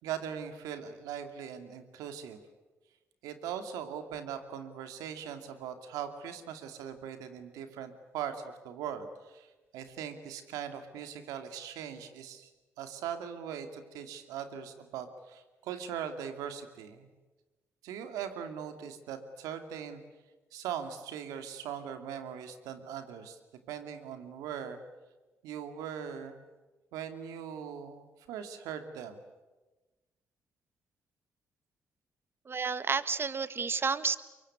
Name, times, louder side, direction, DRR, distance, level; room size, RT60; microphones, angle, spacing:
voice 1, 0.0-2.4 3.2-12.5 12.8-17.1 17.8-20.0 20.5-23.4 23.7-24.8 25.4-26.4 26.9-29.2, right 8 dB, 85° right, 8 dB, 2.5 m, -40 dB
voice 2, 32.5-34.2, right 5 dB, 40° right, 14 dB, 1.5 m, -30 dB
24.0 x 23.5 x 9.7 m, 1.2 s
supercardioid pair, 60°, 6 cm